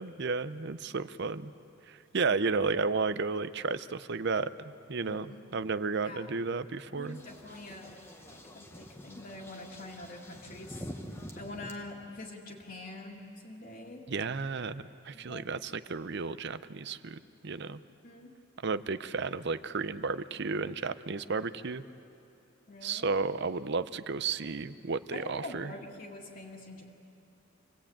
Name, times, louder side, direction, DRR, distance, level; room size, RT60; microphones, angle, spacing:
voice 1, 0.0-1.5 1.9-7.2 14.1-17.8 18.6-21.8 22.8-25.7, right 4 dB, 55° right, 14 dB, 0.6 m, -33 dB
voice 2, 5.1-5.4 6.0-6.3 6.9-8.0 8.2-14.0 15.1-15.6 18.0-18.3 22.7-23.1 25.1-26.9, left 2 dB, 45° left, -6 dB, 2.1 m, -45 dB
sound 1, 7.1-11.7, equal, 10° left, 1.2 m, -46 dB
27.0 x 19.0 x 8.7 m, 2.8 s
head